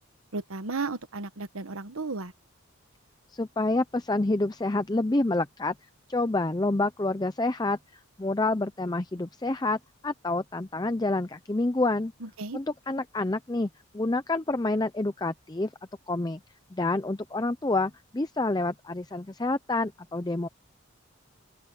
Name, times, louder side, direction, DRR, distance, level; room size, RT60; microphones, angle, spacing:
voice 1, 0.3-2.3 12.2-12.6, right 3 dB, 80° right, 1.2 m, -34 dB
voice 2, 3.3-5.7 6.1-7.8 8.2-12.1 12.5-13.7 13.9-15.7 16.1-16.4 16.7-20.5, left 2 dB, 20° left, 0.5 m, -28 dB
open air
head